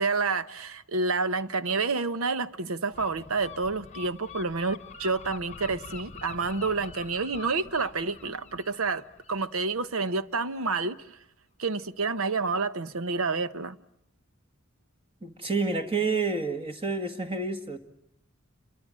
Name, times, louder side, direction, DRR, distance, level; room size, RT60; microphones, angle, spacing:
voice 1, 0.0-11.0 11.6-13.8, right 4 dB, 85° right, 1.0 m, -29 dB
Gull seagull, 2.9-10.4, left 6 dB, 35° left, 1.0 m, -46 dB
voice 2, 15.2-17.8, right 4 dB, 25° right, 1.8 m, -29 dB
28.5 x 24.0 x 7.5 m
head